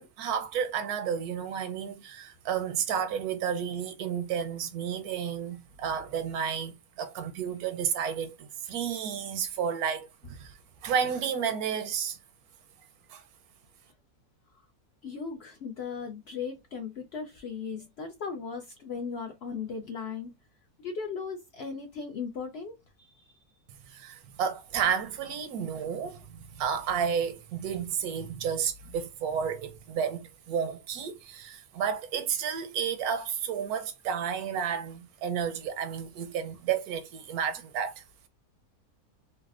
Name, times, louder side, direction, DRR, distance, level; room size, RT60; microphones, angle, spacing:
voice 1, 0.0-10.5 10.8-12.2 13.1-13.2 23.9-38.0, right 7 dB, 85° right, 1.1 m, -31 dB
voice 2, 15.0-20.3 20.8-23.1, left 5 dB, 65° left, 0.6 m, -37 dB
4.0 x 2.1 x 2.4 m
omnidirectional pair, 1.6 m